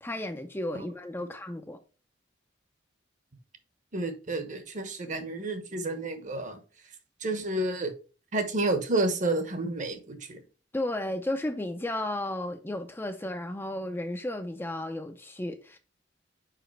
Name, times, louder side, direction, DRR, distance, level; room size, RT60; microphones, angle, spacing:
voice 1, 0.0-1.8 10.7-15.8, left 1 dB, 10° left, 0.5 m, -33 dB
voice 2, 3.9-6.6 7.2-7.9 8.3-10.4, right 2 dB, 45° right, 1.0 m, -30 dB
5.0 x 5.0 x 4.5 m
head